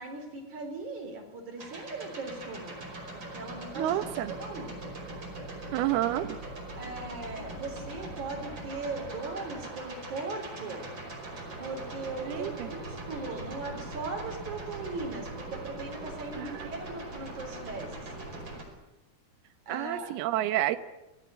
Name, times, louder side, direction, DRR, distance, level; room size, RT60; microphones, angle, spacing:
voice 1, 0.0-4.0 4.3-4.8 6.8-10.9 11.6-18.1 19.7-20.1, right 3 dB, 50° right, 1 dB, 5.9 m, -39 dB
sound 1, 1.6-18.6, right 2 dB, 30° right, 5.7 m, -41 dB
voice 2, 3.8-4.3 5.7-6.4 12.2-12.7 16.3-16.7 19.7-20.8, right 13 dB, 85° right, 9 dB, 3.0 m, -29 dB
27.5 x 19.0 x 8.2 m, 0.98 s
omnidirectional pair, 4.4 m